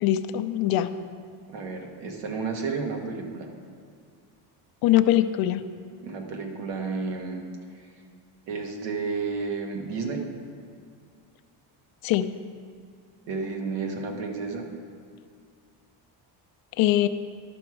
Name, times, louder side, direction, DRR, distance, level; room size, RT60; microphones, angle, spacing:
voice 1, 0.0-0.9 4.8-5.6 12.0-12.3 16.8-17.1, left 13 dB, 55° left, 11 dB, 0.5 m, -22 dB
voice 2, 1.5-3.5 6.0-7.4 8.5-10.3 13.3-14.7, right 4 dB, 85° right, 2 dB, 1.4 m, -31 dB
11.5 x 6.0 x 4.6 m, 2.2 s
cardioid pair, 150°, 42 cm